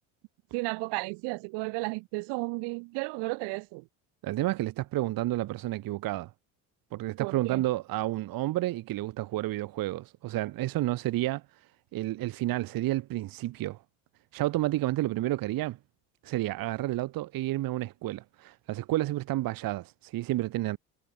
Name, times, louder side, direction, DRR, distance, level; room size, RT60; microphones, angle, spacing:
voice 1, 0.5-3.9 7.2-7.6, right 30 dB, 75° right, 1.2 m, -33 dB
voice 2, 4.2-6.3 6.9-11.4 11.9-13.8 14.3-15.8 16.2-20.8, right 16 dB, 55° right, 0.9 m, -30 dB
supercardioid pair, 75°, 41 cm